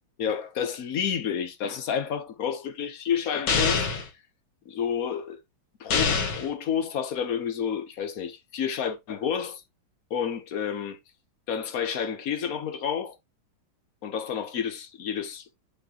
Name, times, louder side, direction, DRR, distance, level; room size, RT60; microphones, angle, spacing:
voice 1, 0.2-3.9 4.7-5.4 5.8-9.6 10.1-11.0 11.5-13.2 14.0-15.6, left 8 dB, 55° left, 1.2 m, -30 dB
sound 1, 3.5-4.1 5.9-6.5, left 5 dB, 75° left, 2.2 m, -24 dB
6.4 x 6.4 x 2.9 m
omnidirectional pair, 2.2 m